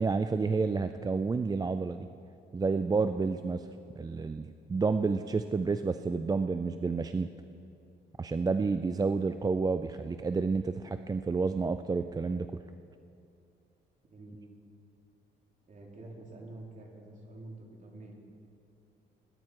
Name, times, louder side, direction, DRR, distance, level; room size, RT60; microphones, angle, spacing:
voice 1, 0.0-2.1 2.5-3.7 4.0-7.3 8.2-12.5, right 4 dB, 20° right, 10 dB, 0.4 m, -30 dB
voice 2, 15.7-18.1, right 2 dB, 40° right, -1 dB, 3.0 m, -48 dB
20.5 x 10.0 x 4.7 m, 2.6 s
cardioid pair, 90°, 20 cm